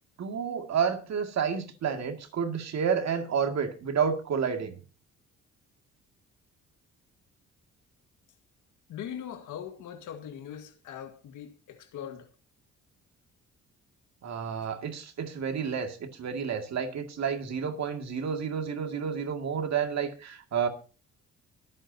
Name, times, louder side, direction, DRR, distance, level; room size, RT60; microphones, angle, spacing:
voice 1, 0.2-4.8 14.2-20.7, right 7 dB, 60° right, 2.3 m, -30 dB
voice 2, 8.9-12.3, left 9 dB, 80° left, 1.9 m, -41 dB
23.5 x 8.8 x 2.8 m
cardioid pair, 90°, 30 cm